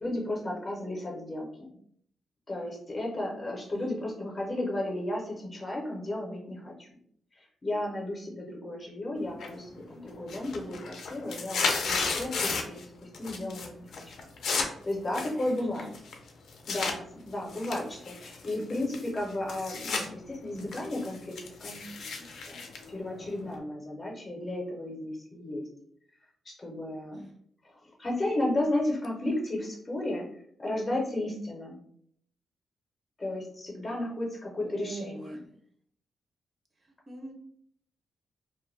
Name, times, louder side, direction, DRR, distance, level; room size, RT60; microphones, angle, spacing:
voice 1, 0.0-1.7 2.5-6.9 7.3-12.8 13.2-14.1 14.5-15.9 16.7-21.3 21.6-25.6 26.4-27.2 27.6-30.3 30.6-31.8 33.2-35.4, left 1 dB, 30° left, -2 dB, 0.6 m, -34 dB
sound 1, 9.4-9.8 10.1-12.8 13.1-13.7 13.9-17.0 17.5-20.1 20.4-23.6, left 4 dB, 80° left, 0.4 m, -33 dB
voice 2, 15.6-16.0 27.1-27.4 34.6-35.4 37.1-37.3, right 2 dB, 30° right, 2 dB, 0.5 m, -43 dB
2.1 x 2.1 x 3.1 m, 0.65 s
wide cardioid pair, 145°, 0 cm